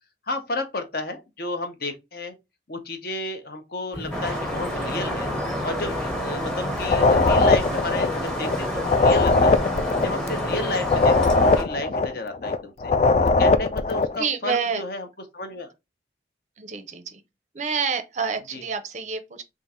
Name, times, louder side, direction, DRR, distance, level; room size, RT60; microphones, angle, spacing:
voice 1, 0.3-2.3 2.7-5.3 5.6-9.6 10.0-12.9 13.4-15.1 15.3-15.7 18.5-18.6, left 2 dB, 55° left, 0.8 m, -32 dB
sound 1, 3.9-11.1, left 1 dB, 75° left, 1.7 m, -34 dB
sound 2, 4.1-11.6, left 1 dB, 5° left, 0.8 m, -29 dB
sound 3, 6.8-8.6 8.8-12.6 12.8-14.2, left 3 dB, 35° left, 0.3 m, -20 dB
voice 2, 14.2-14.8 16.6-17.2 17.5-19.4, right 5 dB, 40° right, 0.5 m, -28 dB
3.6 x 2.5 x 4.2 m
head